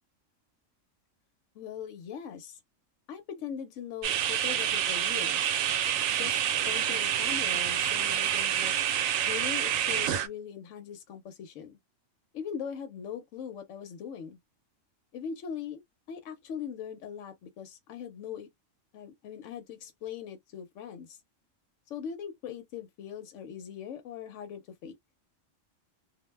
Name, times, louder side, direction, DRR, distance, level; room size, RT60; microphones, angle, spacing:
voice 1, 1.5-2.6 3.1-5.5 6.1-6.4 6.7-8.7 9.2-11.8 12.3-14.4 15.1-15.8 16.1-18.5 18.9-21.2 21.9-25.0, left 8 dB, 75° left, 1.0 m, -40 dB
sound 1, 4.0-10.3, right 10 dB, 85° right, 1.0 m, -28 dB
2.4 x 2.1 x 3.1 m
omnidirectional pair, 1.3 m